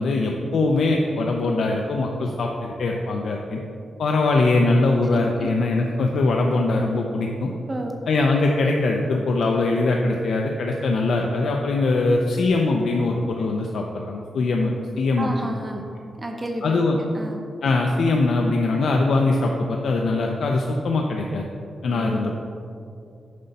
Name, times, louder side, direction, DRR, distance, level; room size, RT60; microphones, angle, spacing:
voice 1, 0.0-3.6 4.0-7.5 8.1-15.5 16.6-17.0 17.6-21.4 21.8-22.4, left 2 dB, 70° left, 1 dB, 0.5 m, -22 dB
voice 2, 15.2-15.9 16.1-16.8 17.1-17.4 21.9-22.2, right 1 dB, 20° right, 2 dB, 0.7 m, -31 dB
7.6 x 5.4 x 4.0 m, 2.5 s
wide cardioid pair, 130°, 0 cm